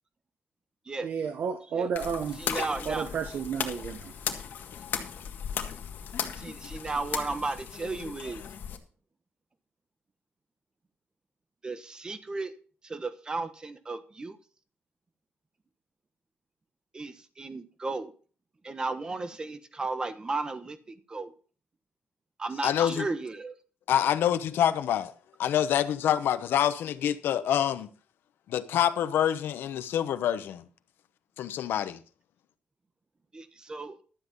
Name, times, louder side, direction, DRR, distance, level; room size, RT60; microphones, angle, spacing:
voice 1, 1.0-2.4 2.8-4.3, right 6 dB, 60° right, 1.1 m, -32 dB
sound 1, 1.9-8.8, left 8 dB, 60° left, 1.7 m, -36 dB
voice 2, 2.4-3.1 6.3-8.4 11.6-12.5 12.8-14.4 16.9-18.1 18.6-21.3 22.4-23.6 33.3-34.0, right 3 dB, 20° right, 1.1 m, -34 dB
voice 3, 22.6-23.0 23.9-25.1 25.4-27.9 28.5-30.6 31.4-32.0, left 10 dB, 85° left, 0.9 m, -26 dB
12.5 x 8.0 x 5.4 m
cardioid pair, 145°, 4 cm